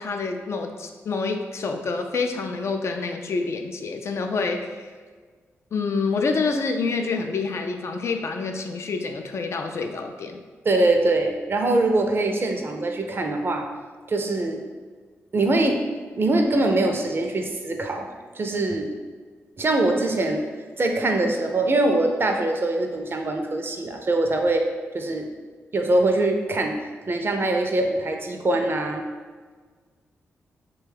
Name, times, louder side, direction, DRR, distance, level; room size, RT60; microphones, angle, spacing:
voice 1, 0.0-4.9 5.7-10.4, left 4 dB, 55° left, 4 dB, 0.3 m, -27 dB
voice 2, 10.6-13.7 14.1-14.6 15.3-15.8 16.2-18.1 18.4-18.9 19.6-20.4 20.8-24.6 24.9-25.3 25.7-26.8 27.1-29.0, right 2 dB, 45° right, 3 dB, 0.4 m, -23 dB
3.0 x 2.2 x 3.3 m, 1.5 s
supercardioid pair, 50°, 5 cm